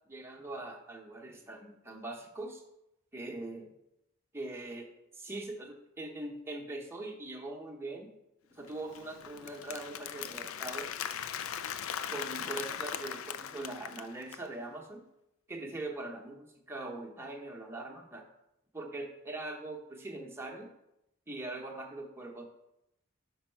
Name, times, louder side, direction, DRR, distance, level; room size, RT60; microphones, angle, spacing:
voice 1, 0.1-2.6 3.1-3.7 4.3-8.1 8.5-10.9 12.1-15.0 15.5-18.3 18.7-20.7 21.3-22.4, right 2 dB, 10° right, 0 dB, 0.8 m, -42 dB
Applause, 8.7-14.5, left 8 dB, 70° left, 0.4 m, -39 dB
5.7 x 5.4 x 4.5 m, 0.86 s
head